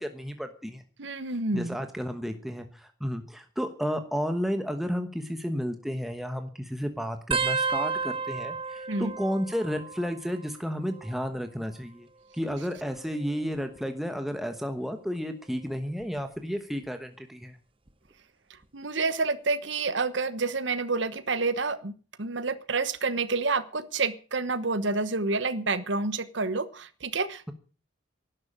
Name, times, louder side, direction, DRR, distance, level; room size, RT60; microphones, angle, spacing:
voice 1, 0.0-0.8 1.5-12.1 12.3-17.6, equal, ahead, 6 dB, 1.2 m, -32 dB
voice 2, 1.0-1.8 8.9-9.1 18.7-21.9 22.2-27.5, right 3 dB, 70° right, 13 dB, 1.2 m, -28 dB
sound 1, 7.3-10.5 10.8-11.4 12.4-13.8 14.5-14.8 16.0-16.4 17.9-18.0, right 4 dB, 30° right, 1.0 m, -33 dB
12.0 x 11.0 x 8.8 m, 0.40 s
head